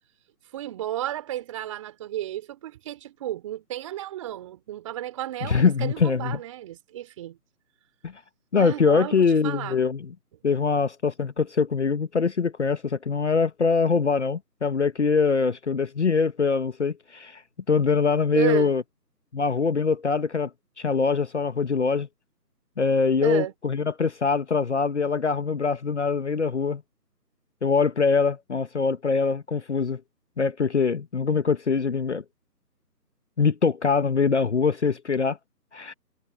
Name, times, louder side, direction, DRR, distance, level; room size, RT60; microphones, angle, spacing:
voice 1, 0.5-7.4 8.6-9.8 18.3-18.7 23.2-23.5, right 13 dB, 20° right, 3.5 m, -32 dB
voice 2, 5.5-6.4 8.0-8.1 8.5-10.1 10.4-17.4 17.7-18.8 19.3-20.5 20.8-22.1 22.8-26.8 27.6-30.0 30.4-32.2 33.4-35.4 35.7-35.9, left 5 dB, 45° left, 1.2 m, -23 dB
figure-of-eight pair, 160°, 49 cm